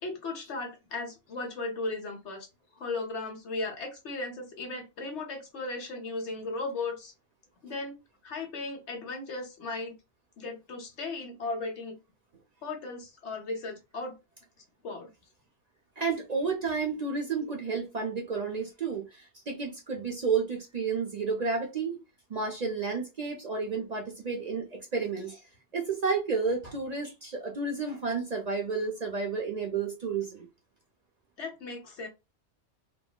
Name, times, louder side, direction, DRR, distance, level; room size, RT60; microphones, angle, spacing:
voice 1, 0.0-2.5 2.8-7.1 7.6-7.9 8.2-9.9 10.4-12.0 12.6-14.2 14.8-15.1 31.4-32.1, left 3 dB, 75° left, 1.3 m, -36 dB
voice 2, 16.0-22.0 22.3-25.4 25.7-30.5, right 4 dB, 45° right, 0.6 m, -31 dB
3.7 x 2.0 x 2.2 m
omnidirectional pair, 1.2 m